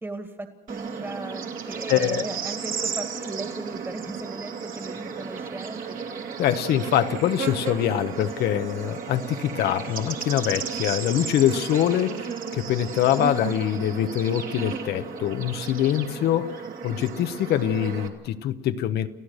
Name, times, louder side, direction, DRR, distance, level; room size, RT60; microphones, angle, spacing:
voice 1, 0.0-6.0, right 2 dB, 15° right, 2.0 m, -37 dB
Bird / Insect, 0.7-18.1, right 6 dB, 55° right, 2.6 m, -34 dB
voice 2, 1.9-2.2 6.4-19.1, left 11 dB, 75° left, 1.1 m, -24 dB
29.5 x 14.5 x 6.6 m
cardioid pair, 110°, 17 cm